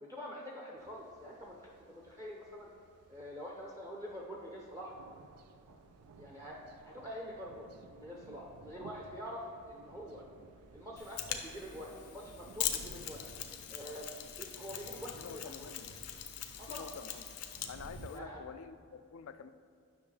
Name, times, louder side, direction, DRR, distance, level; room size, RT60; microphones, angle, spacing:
voice 1, 0.0-2.7 3.1-4.9 6.2-10.2 10.7-13.2 13.7-14.1 14.3-15.5 16.6-16.9 18.1-18.4, equal, 15° right, -3 dB, 0.6 m, -46 dB
sound 1, 0.8-18.1, right 3 dB, 90° right, 0.5 m, -57 dB
Mechanisms, 11.0-18.2, left 10 dB, 90° left, 0.7 m, -42 dB
voice 2, 15.1-15.9 16.7-19.5, left 6 dB, 60° left, 12 dB, 0.3 m, -48 dB
9.6 x 6.2 x 3.3 m, 2.6 s
head